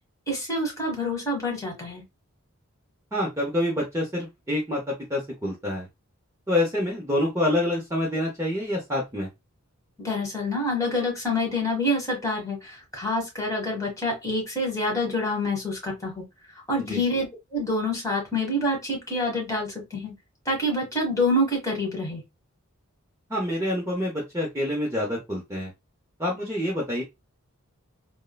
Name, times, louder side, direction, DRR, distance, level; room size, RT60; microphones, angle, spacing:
voice 1, 0.3-2.0 10.0-16.3 16.7-20.1 20.4-22.2, left 1 dB, 15° left, 1.3 m, -27 dB
voice 2, 3.1-5.9 6.5-9.3 16.9-17.0 23.3-25.7 26.2-27.0, left 1 dB, 15° right, 0.7 m, -27 dB
3.6 x 2.1 x 2.2 m
head